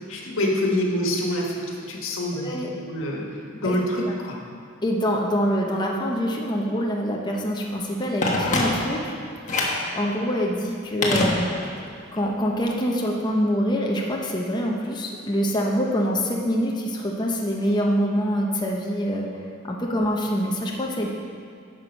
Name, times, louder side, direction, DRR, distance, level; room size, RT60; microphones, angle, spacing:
voice 1, 0.0-2.5 2.8-4.4, left 1 dB, 85° left, -1 dB, 1.5 m, -26 dB
voice 2, 2.4-2.7 3.6-3.8 4.8-9.1 9.9-11.5 12.1-19.3 19.6-21.1, equal, 20° left, -2 dB, 0.8 m, -25 dB
Telephone, 8.2-9.1 9.5-9.9 11.0-11.9 12.2-12.3, left 2 dB, 40° left, 1.3 m, -24 dB
10.5 x 6.2 x 5.3 m, 2.4 s
head